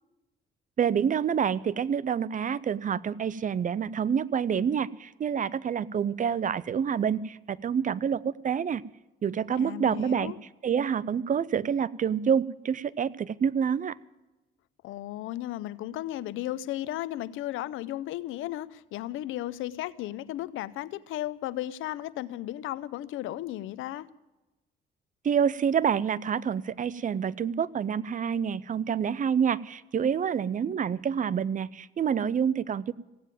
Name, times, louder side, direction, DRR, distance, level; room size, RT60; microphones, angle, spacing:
voice 1, 0.8-8.8 9.2-10.3 10.6-13.9 25.2-32.9, right 7 dB, 40° right, 20 dB, 0.6 m, -27 dB
voice 2, 9.5-10.4 14.8-24.1, left 14 dB, 90° left, 18 dB, 0.6 m, -35 dB
16.5 x 9.1 x 9.0 m, 1.0 s
cardioid pair, 90°, 20 cm